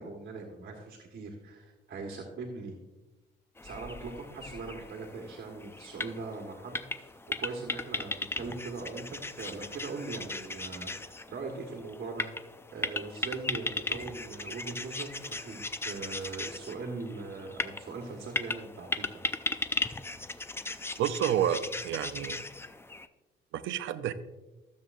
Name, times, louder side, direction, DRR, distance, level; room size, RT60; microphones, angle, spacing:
voice 1, 0.0-2.8 3.6-7.1 7.4-19.1, right 3 dB, 55° right, 1 dB, 1.5 m, -41 dB
sound 1, 3.6-23.1, left 2 dB, 10° left, 0.4 m, -37 dB
voice 2, 21.0-22.4 23.5-24.1, right 10 dB, 80° right, 12 dB, 0.6 m, -30 dB
14.5 x 7.3 x 2.6 m, 1.1 s
cardioid pair, 90°, 20 cm